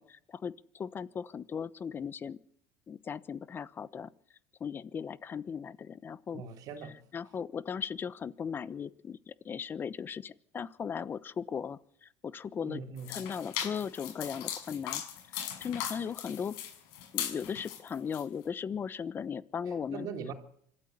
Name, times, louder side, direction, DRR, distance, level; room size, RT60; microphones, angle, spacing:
voice 1, 0.0-2.4 2.9-4.1 4.6-6.4 7.1-12.8 13.1-15.0 15.3-16.5 17.1-20.1, left 7 dB, 30° left, 17 dB, 1.0 m, -37 dB
voice 2, 6.3-6.9 12.6-13.2 19.7-20.3, right 6 dB, 55° right, 6 dB, 4.0 m, -41 dB
sound 1, 13.0-18.2, left 10 dB, 75° left, 6.1 m, -38 dB
26.0 x 13.5 x 8.2 m, 0.68 s
supercardioid pair, 120°, 8 cm